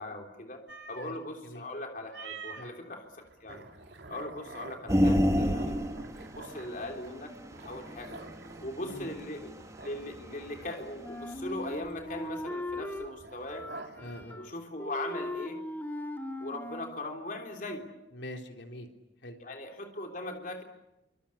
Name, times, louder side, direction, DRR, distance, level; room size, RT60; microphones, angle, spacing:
voice 1, 0.0-3.1 3.4-3.7 4.1-5.8 6.2-7.3 7.6-8.2 8.6-9.5 9.8-13.7 14.4-15.6 16.4-17.9 19.4-20.6, left 1 dB, 45° left, 3 dB, 3.4 m, -39 dB
sound 1, 0.7-1.1 2.1-2.7 3.2-14.2, right 3 dB, 70° right, 3.2 m, -48 dB
sound 2, 4.9-10.7 11.1-11.2, equal, 15° right, 1.7 m, -29 dB
Wind instrument woodwind instrument, 11.0-13.1 13.5-14.5 14.8-17.0, left 1 dB, 10° left, 2.1 m, -39 dB
voice 2, 14.0-14.4 18.1-18.9 19.2-19.4, equal, 75° left, 4 dB, 3.5 m, -43 dB
26.5 x 25.0 x 8.5 m, 0.95 s
head